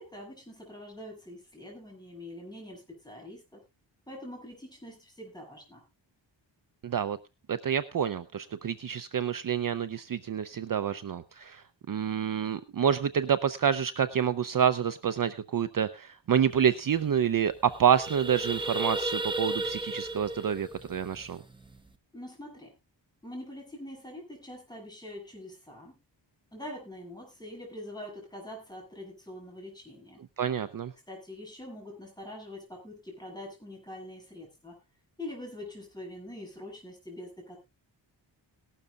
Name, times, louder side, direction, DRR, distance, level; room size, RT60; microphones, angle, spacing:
voice 1, 0.0-3.6 4.1-5.8 22.1-22.7 23.2-26.0 26.5-30.2 31.1-34.8 35.2-37.6, left 1 dB, 10° left, -1 dB, 7.3 m, -44 dB
voice 2, 6.8-7.2 7.5-21.4 30.4-30.9, right 8 dB, 50° right, 12 dB, 0.6 m, -28 dB
sound 1, 16.6-16.7 17.0-17.2 17.5-21.9, right 2 dB, 10° right, 1.2 m, -34 dB
18.5 x 12.0 x 2.4 m, 0.25 s
wide cardioid pair, 145°, 44 cm